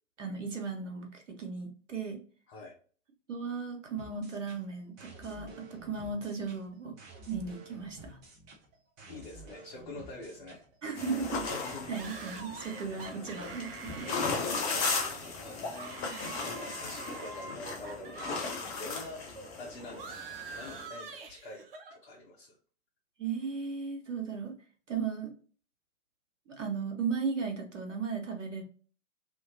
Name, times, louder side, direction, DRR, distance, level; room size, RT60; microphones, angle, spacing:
voice 1, 0.2-2.2 3.3-6.9 7.3-8.2 10.8-14.3 16.0-16.3 23.2-24.5 24.9-25.3 26.5-28.6, right 5 dB, 70° right, 2 dB, 1.1 m, -36 dB
sound 1, 4.0-12.0, right 2 dB, 15° right, 0.4 m, -51 dB
voice 2, 9.1-10.6 11.5-11.9 14.7-16.3 16.6-19.2 19.6-21.7 22.0-22.6, left 2 dB, 45° left, -4 dB, 1.1 m, -46 dB
sound 2, 10.9-20.8, left 4 dB, 25° left, 0.7 m, -36 dB
sound 3, 11.9-18.5 18.8-22.0, right 4 dB, 45° right, 0.7 m, -46 dB
3.0 x 2.8 x 2.6 m, 0.42 s
figure-of-eight pair, 110°, 38 cm